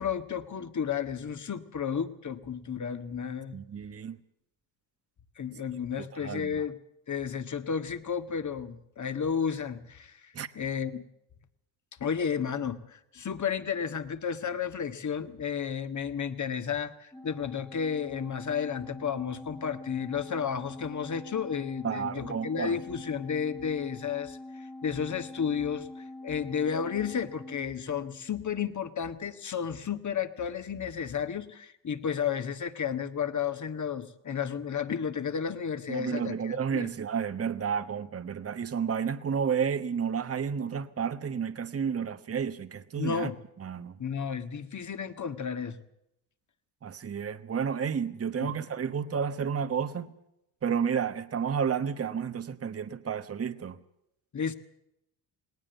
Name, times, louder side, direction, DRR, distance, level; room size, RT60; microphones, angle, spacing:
voice 1, 0.0-3.6 5.4-6.8 7.1-11.0 12.0-36.9 43.0-43.4 44.0-45.8 48.4-48.5 54.3-54.6, left 7 dB, 35° left, 1.8 m, -32 dB
voice 2, 3.5-4.2 6.0-6.6 10.3-10.5 21.8-22.8 35.9-43.3 43.6-43.9 46.8-50.1 50.6-53.8, right 7 dB, 30° right, 1.2 m, -31 dB
Organ, 17.1-28.4, left 2 dB, 5° left, 1.9 m, -45 dB
19.0 x 19.0 x 8.1 m
supercardioid pair, 70°, 47 cm